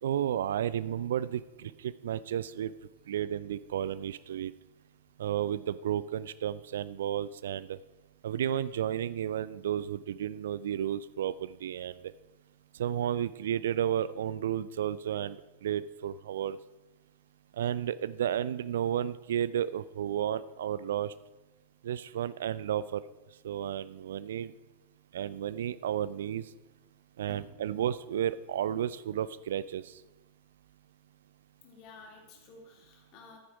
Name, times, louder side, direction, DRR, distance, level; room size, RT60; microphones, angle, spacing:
voice 1, 0.0-2.7 3.1-4.5 5.2-7.8 8.2-12.1 12.7-16.6 17.5-21.1 21.8-23.0 23.4-24.5 25.1-26.5 27.2-30.0, right 10 dB, 60° right, 18 dB, 0.3 m, -32 dB
voice 2, 27.3-27.7 31.6-33.4, left 4 dB, 40° left, 2 dB, 2.4 m, -52 dB
10.5 x 9.2 x 4.6 m, 1.1 s
figure-of-eight pair, 90°, 0 cm